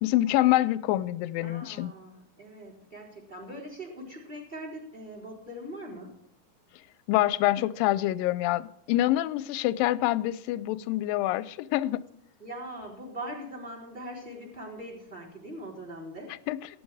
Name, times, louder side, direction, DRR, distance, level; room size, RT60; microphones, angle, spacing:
voice 1, 0.0-1.9 7.1-12.0 16.5-16.8, left 15 dB, 80° left, 17 dB, 2.2 m, -26 dB
voice 2, 1.4-6.1 10.7-10.8 12.4-16.3, right 1 dB, 10° right, 1 dB, 3.9 m, -41 dB
15.0 x 11.5 x 4.8 m, 0.80 s
omnidirectional pair, 4.2 m